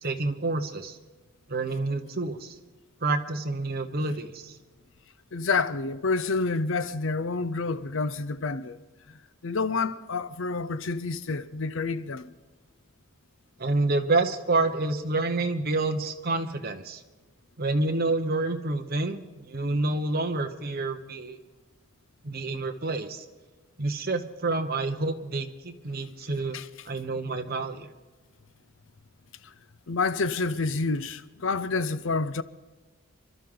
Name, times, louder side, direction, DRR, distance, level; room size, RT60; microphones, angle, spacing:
voice 1, 0.0-1.0 1.5-2.6 3.0-4.6 13.6-17.0 17.6-21.4 22.2-23.2 23.8-27.9, right 2 dB, 45° right, 1.1 m, -28 dB
voice 2, 5.3-8.8 9.4-12.3 26.5-26.7 29.4-29.5 29.9-32.4, left 4 dB, 60° left, 0.6 m, -28 dB
26.5 x 12.0 x 3.9 m
head